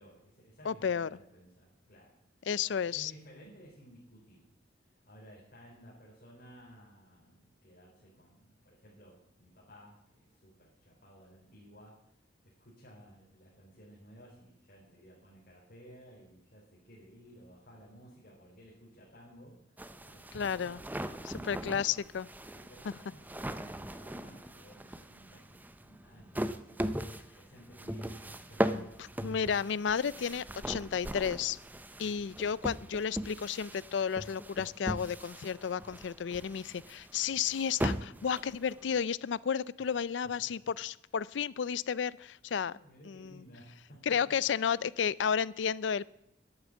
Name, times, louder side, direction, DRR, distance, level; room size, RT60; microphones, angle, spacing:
voice 1, 0.0-4.5 4.8-21.8 22.5-28.7 32.0-32.2 39.8-40.7 42.5-44.1, equal, 55° left, -5 dB, 4.0 m, -56 dB
voice 2, 0.7-1.1 2.5-3.1 20.3-20.8 21.2-22.3 28.7-31.6 32.0-42.7 43.1-43.4 44.1-46.0, left 7 dB, 80° left, 21 dB, 0.4 m, -32 dB
sound 1, 19.8-39.0, right 1 dB, 10° right, 0.6 m, -39 dB
11.5 x 8.9 x 8.4 m, 0.79 s
head